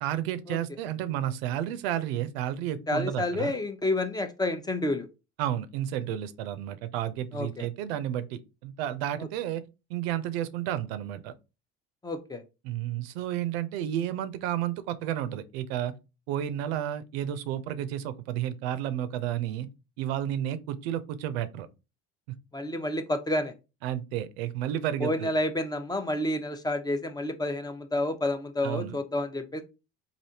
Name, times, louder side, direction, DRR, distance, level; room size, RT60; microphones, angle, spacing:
voice 1, 0.0-3.6 5.4-9.6 9.9-11.3 12.6-15.9 16.3-19.7 20.0-21.7 23.8-25.3 28.6-29.0, right 11 dB, 85° right, 0.5 m, -31 dB
voice 2, 2.9-5.1 7.3-7.7 9.2-9.3 12.0-12.4 22.5-23.5 25.0-29.6, left 1 dB, 15° left, 0.5 m, -29 dB
3.3 x 2.5 x 2.7 m
supercardioid pair, 85°, 30 cm